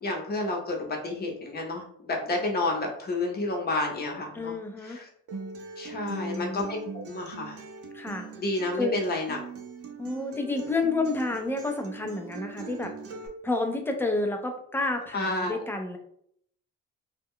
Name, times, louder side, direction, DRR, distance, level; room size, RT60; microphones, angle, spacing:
voice 1, 0.0-5.1 5.8-7.6 8.4-9.4 15.1-15.6, left 2 dB, 30° left, 0 dB, 0.8 m, -30 dB
voice 2, 4.3-5.0 5.9-6.9 7.9-8.3 8.7-9.0 10.0-12.9 13.4-16.0, left 3 dB, 5° left, 4 dB, 0.5 m, -30 dB
Acoustic guitar, 5.3-13.3, right 5 dB, 50° right, 0.6 m, -42 dB
2.3 x 2.1 x 3.6 m, 0.66 s
cardioid pair, 90°, 30 cm